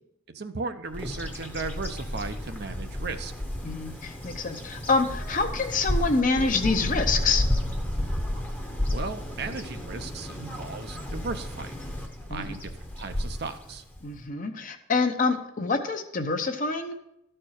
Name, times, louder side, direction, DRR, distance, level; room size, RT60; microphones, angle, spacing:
voice 1, 0.3-3.3 8.9-11.7 12.3-12.7 13.0-13.8, right 4 dB, 50° right, 8 dB, 0.7 m, -36 dB
Bird vocalization bird call bird song, 0.9-14.2, left 1 dB, 10° left, 0.9 m, -32 dB
voice 2, 3.6-7.4 12.3-12.6 14.0-16.9, left 4 dB, 40° left, 6 dB, 0.8 m, -26 dB
13.0 x 4.5 x 6.5 m, 0.81 s
head